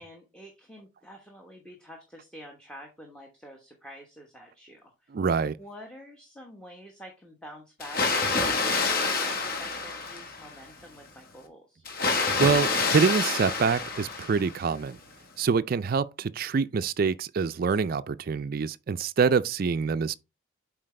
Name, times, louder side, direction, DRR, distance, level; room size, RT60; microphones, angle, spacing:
voice 1, 0.0-5.1 5.6-11.8, equal, 5° left, 1.1 m, -48 dB
voice 2, 5.1-5.6 12.4-15.0 15.4-20.1, right 5 dB, 45° right, 0.3 m, -25 dB
Water, 7.8-10.6 11.9-14.7, left 4 dB, 45° left, 1.3 m, -27 dB
7.6 x 4.6 x 3.3 m
head